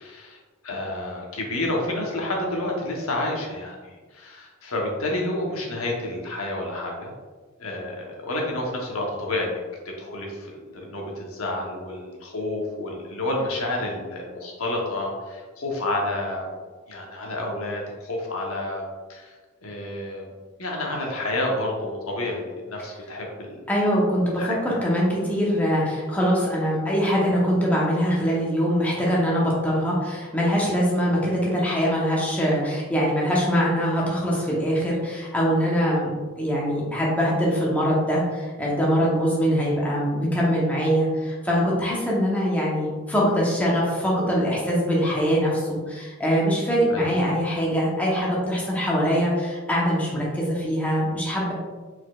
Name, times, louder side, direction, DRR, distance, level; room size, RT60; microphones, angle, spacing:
voice 1, 0.0-7.1 7.6-9.6 9.8-16.5 16.9-19.3 19.6-20.3 20.6-23.6 24.4-24.6 46.9-47.1, left 1 dB, 90° left, -1 dB, 1.0 m, -29 dB
voice 2, 23.7-51.5, equal, 5° left, -5 dB, 0.8 m, -23 dB
4.5 x 4.2 x 2.3 m, 1.4 s
head